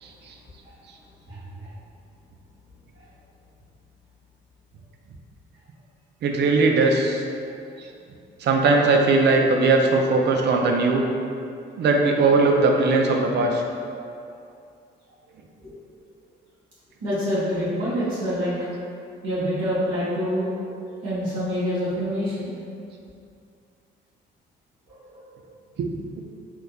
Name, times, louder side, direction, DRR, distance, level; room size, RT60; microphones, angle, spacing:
voice 1, 0.0-0.3 6.2-7.2 7.8-7.9 8.4-11.0 11.8-13.6 25.8-25.9, right 3 dB, 60° right, 2 dB, 0.5 m, -19 dB
voice 2, 1.3-1.7 15.6-15.8 17.0-18.5 19.2-22.6 24.9-25.2, equal, 90° right, -10 dB, 1.4 m, -27 dB
3.6 x 2.8 x 2.3 m, 2.4 s
cardioid pair, 90°, 20 cm